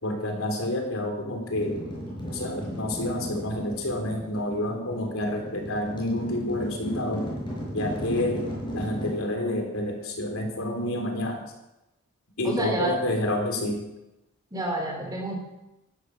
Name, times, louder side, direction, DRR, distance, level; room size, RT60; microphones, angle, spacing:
voice 1, 0.0-1.8 2.3-7.3 7.7-8.4 8.7-11.4 12.4-13.9, left 1 dB, 75° left, 2 dB, 3.6 m, -29 dB
sound 1, 1.5-9.1, equal, 20° left, 5.6 m, -36 dB
voice 2, 12.4-13.0 14.5-15.4, right 1 dB, 20° right, 1 dB, 3.2 m, -29 dB
13.0 x 12.0 x 6.6 m, 0.95 s
head